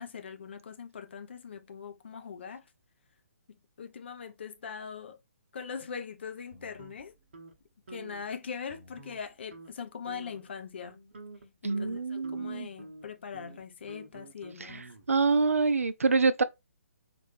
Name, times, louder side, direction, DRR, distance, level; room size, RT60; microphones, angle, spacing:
voice 1, 0.0-2.6 3.8-5.2 5.5-7.1 7.9-11.0 11.6-14.9, left 6 dB, 45° left, 0.6 m, -41 dB
sound 1, 6.5-7.5 7.9-8.3 8.7-9.2 9.5-9.7 10.1-10.5 10.9-15.2, right 3 dB, 50° right, 1.0 m, -49 dB
voice 2, 11.6-12.7 14.6-14.8 15.1-16.4, right 4 dB, 65° right, 0.4 m, -26 dB
4.2 x 2.6 x 3.3 m
figure-of-eight pair, 135°, 8 cm